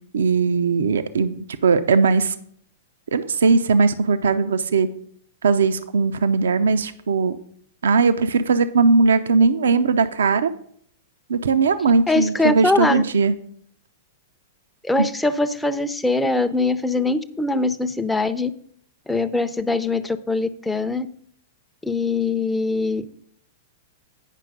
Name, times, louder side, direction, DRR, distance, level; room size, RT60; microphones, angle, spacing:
voice 1, 0.1-1.3 1.6-2.3 3.1-4.9 5.4-7.4 7.8-10.5 11.3-13.3, right 4 dB, 70° right, 11 dB, 0.6 m, -19 dB
voice 2, 12.1-13.0 14.8-18.5 19.1-21.1 21.8-23.1, left 3 dB, 5° left, 9 dB, 0.6 m, -22 dB
9.2 x 5.7 x 4.9 m, 0.63 s
figure-of-eight pair, 105°, 0 cm